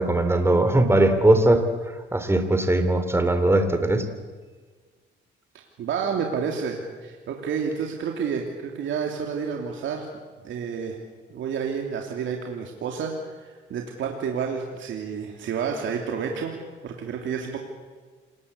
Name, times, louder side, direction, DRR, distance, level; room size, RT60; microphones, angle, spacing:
voice 1, 0.0-4.1, right 1 dB, 10° right, 8 dB, 3.2 m, -20 dB
voice 2, 5.8-10.1 10.4-11.0 11.3-16.5 16.8-17.6, right 6 dB, 75° right, 2 dB, 3.0 m, -30 dB
28.0 x 19.5 x 8.5 m, 1.5 s
cardioid pair, 90°, 20 cm